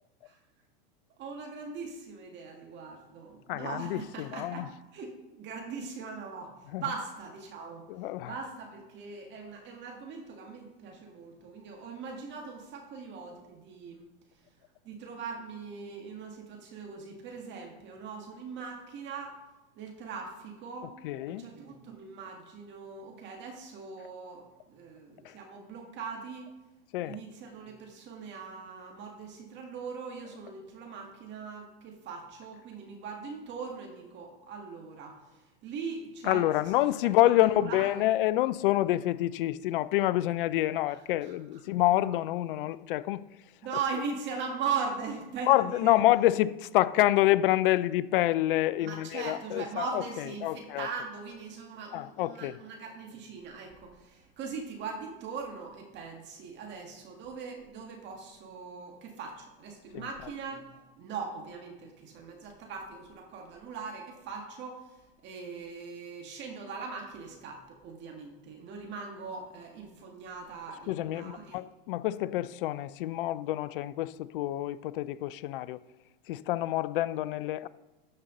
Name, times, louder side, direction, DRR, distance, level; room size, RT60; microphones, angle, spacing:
voice 1, 1.2-4.7 4.9-7.8 8.2-14.1 14.8-19.4 19.8-20.9 21.3-26.5 27.0-36.4 37.2-38.0 41.2-41.3 43.6-46.0 48.8-71.6, right 5 dB, 40° right, 1.9 m, -40 dB
voice 2, 3.5-4.7 6.7-6.8 7.9-8.3 21.0-21.5 25.2-25.3 26.9-27.2 36.2-43.2 45.5-50.0 50.4-50.9 51.9-52.6 59.9-60.0 70.9-75.8 76.3-77.7, left 15 dB, 65° left, 0.5 m, -27 dB
13.0 x 5.4 x 3.9 m
hypercardioid pair, 110°, 29 cm